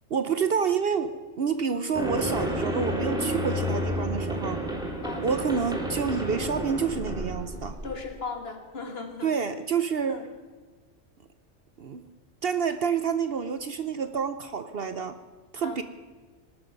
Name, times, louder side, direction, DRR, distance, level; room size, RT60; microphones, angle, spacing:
voice 1, 0.1-1.1 1.4-4.7 5.2-7.8 9.2-10.2 11.8-12.1 12.4-15.2 15.5-15.8, right 6 dB, 55° right, 10 dB, 0.9 m, -28 dB
sound 1, 1.6-10.1, right 1 dB, 90° right, 6.8 m, -51 dB
sound 2, 2.0-8.0, equal, 5° right, 2.3 m, -30 dB
voice 2, 7.8-9.3 10.1-10.3 15.6-15.8, left 4 dB, 50° left, 5 dB, 1.9 m, -37 dB
19.5 x 12.0 x 5.4 m, 1.3 s
omnidirectional pair, 1.4 m